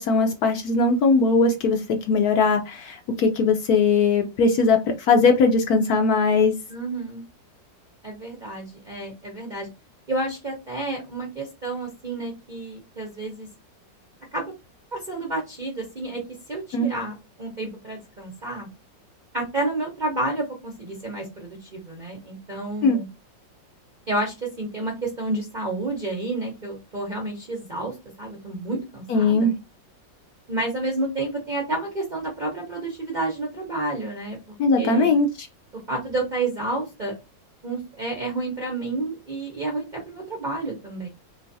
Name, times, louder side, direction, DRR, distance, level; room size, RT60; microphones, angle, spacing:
voice 1, 0.0-6.5 16.7-16.9 22.8-23.0 29.1-29.5 34.6-35.5, left 4 dB, 70° left, 5 dB, 0.9 m, -20 dB
voice 2, 6.7-7.2 8.0-9.7 10.1-13.5 14.3-14.5 14.9-16.2 16.5-17.1 17.4-18.7 19.3-23.1 24.1-29.5 30.5-34.4 34.8-35.1 35.9-37.1 37.6-41.1, right 2 dB, 50° right, -1 dB, 0.5 m, -30 dB
3.4 x 3.1 x 2.6 m, 0.25 s
omnidirectional pair, 2.0 m